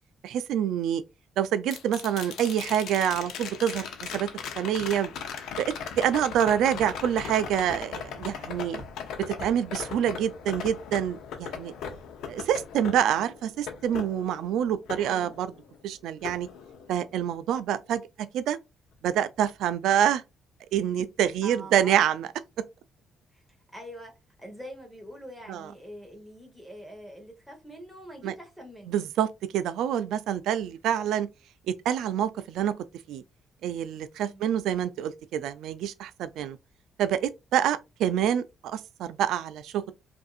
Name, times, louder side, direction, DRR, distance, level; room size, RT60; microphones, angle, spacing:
voice 1, 0.2-1.0 1.4-4.3 4.6-5.1 5.6-5.7 6.0-8.8 9.2-11.7 12.3-15.5 15.8-16.5 16.9-18.0 18.3-18.6 19.0-20.2 20.7-22.3 25.5-25.7 28.2-28.3 28.9-31.3 31.7-32.7 33.1-33.2 33.6-36.6 37.0-39.9, right 10 dB, 90° right, 0.4 m, -27 dB
sound 1, 1.7-15.8 16.2-17.3 19.5-19.6, left 7 dB, 80° left, 0.7 m, -39 dB
voice 2, 14.9-15.3 21.4-22.0 23.3-23.4 23.7-24.1 24.4-29.0 34.2-34.5, equal, ahead, 1.2 m, -44 dB
5.2 x 2.6 x 2.4 m
cardioid pair, 175°, 0 cm